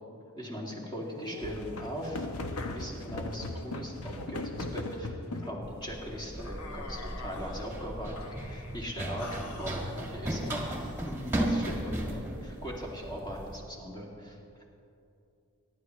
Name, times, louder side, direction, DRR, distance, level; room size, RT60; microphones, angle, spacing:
voice 1, 0.4-2.3 2.7-14.4, equal, 20° left, -3 dB, 2.3 m, -39 dB
sound 1, 1.1-5.6 6.4-7.7 8.2-8.7 9.2-11.0, left 2 dB, 85° left, 1.0 m, -40 dB
Run, 5.6-13.6, right 1 dB, 10° right, 1.6 m, -36 dB
23.5 x 11.5 x 3.2 m, 2.6 s
head